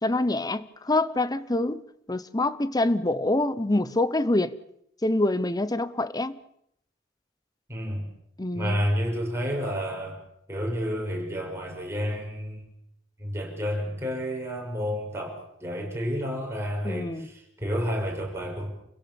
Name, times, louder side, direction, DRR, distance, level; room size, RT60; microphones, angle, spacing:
voice 1, 0.0-1.8 2.1-4.5 5.0-6.4 8.4-8.8 16.8-17.3, left 2 dB, 20° left, 0.9 m, -26 dB
voice 2, 7.7-8.1 8.5-10.2 10.5-12.7 13.2-18.7, equal, 15° right, 6.3 m, -30 dB
28.5 x 16.5 x 7.1 m
head